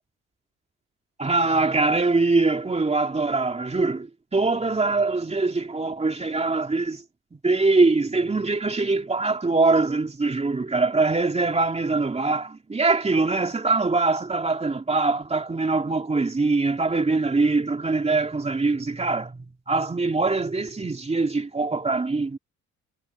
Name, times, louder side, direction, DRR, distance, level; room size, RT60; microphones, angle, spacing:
voice 1, 1.2-7.0 7.3-22.4, right 3 dB, 20° right, 2.7 m, -23 dB
cardioid pair, 90°, 30 cm